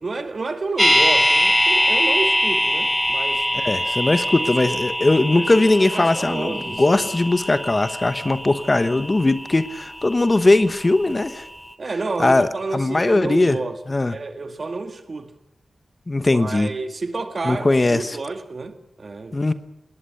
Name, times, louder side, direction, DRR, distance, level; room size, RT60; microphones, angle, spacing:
voice 1, 0.0-3.5 4.4-4.8 5.4-7.1 11.8-13.8 14.1-15.3 16.2-19.4, right 3 dB, 55° right, 1.9 m, -30 dB
sound 1, 0.8-10.8 11.1-11.2, equal, 5° left, 1.2 m, -23 dB
voice 2, 3.5-11.4 12.2-13.6 13.9-14.1 16.1-16.7 17.4-18.2 19.3-19.5, left 2 dB, 35° left, 1.1 m, -19 dB
19.5 x 19.0 x 7.0 m
cardioid pair, 60°, 0 cm